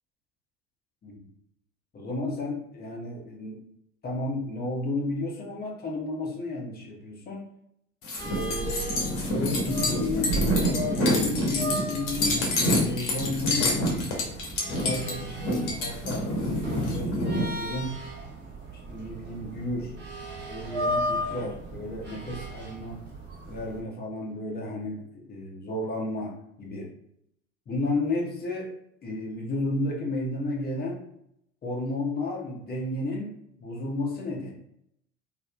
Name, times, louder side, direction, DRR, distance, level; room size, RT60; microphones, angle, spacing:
voice 1, 1.9-3.6 4.0-7.5 8.2-12.5 12.8-14.0 14.7-16.3 16.8-18.0 18.7-19.9 20.5-23.0 23.5-26.9 27.7-28.7 29.0-31.0 31.6-33.3 33.6-34.6, left 2 dB, 25° left, 0 dB, 0.7 m, -32 dB
sound 1, 8.0-17.5, left 1 dB, 55° left, 1.0 m, -27 dB
sound 2, 8.2-23.8, right 1 dB, 30° right, 0.9 m, -36 dB
2.9 x 2.0 x 2.3 m, 0.74 s
hypercardioid pair, 75°, 36 cm